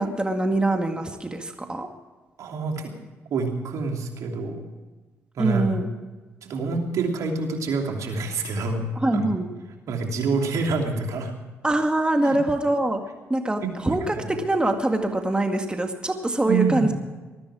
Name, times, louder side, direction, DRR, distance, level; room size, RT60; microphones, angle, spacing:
voice 1, 0.0-1.9 5.4-5.9 9.0-9.5 11.6-13.0 13.3-16.9, right 2 dB, 15° right, 4 dB, 1.9 m, -24 dB
voice 2, 2.4-2.9 3.3-4.6 5.4-5.7 6.4-8.8 9.1-9.4 9.9-11.3 12.2-12.4 13.6-14.3 16.4-16.9, right 4 dB, 70° right, 2 dB, 2.9 m, -27 dB
20.5 x 13.0 x 4.9 m, 1.3 s
supercardioid pair, 60°, 6 cm